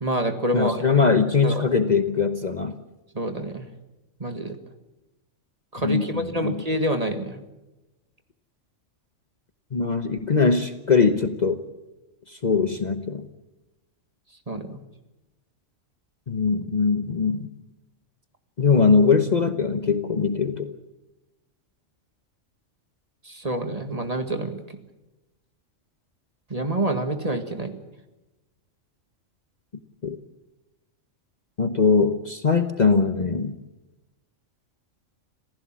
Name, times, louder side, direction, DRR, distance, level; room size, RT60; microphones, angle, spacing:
voice 1, 0.0-1.0 1.4-1.6 3.1-3.6 4.2-4.6 5.7-7.4 14.5-14.8 23.2-24.6 26.5-27.8, right 1 dB, 30° right, 7 dB, 1.9 m, -27 dB
voice 2, 0.5-2.7 5.8-6.6 9.7-11.6 12.3-13.2 16.3-17.5 18.6-20.7 30.0-30.2 31.6-33.5, left 5 dB, 35° left, 8 dB, 1.1 m, -21 dB
26.5 x 15.5 x 7.5 m, 1.0 s
omnidirectional pair, 1.3 m